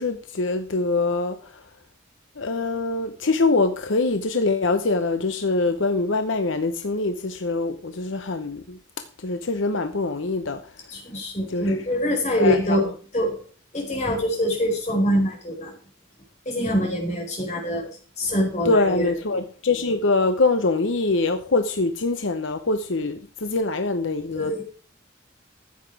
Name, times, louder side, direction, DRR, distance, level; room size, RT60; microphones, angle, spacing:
voice 1, 0.0-1.6 2.4-10.7 11.5-11.9 12.4-12.8 18.6-24.6, left 3 dB, 75° left, 0.9 m, -24 dB
voice 2, 10.9-12.9 13.1-13.3 13.7-15.7 16.4-17.9 18.2-19.1 24.4-24.6, equal, 35° left, 4.7 m, -24 dB
15.0 x 8.2 x 4.7 m
head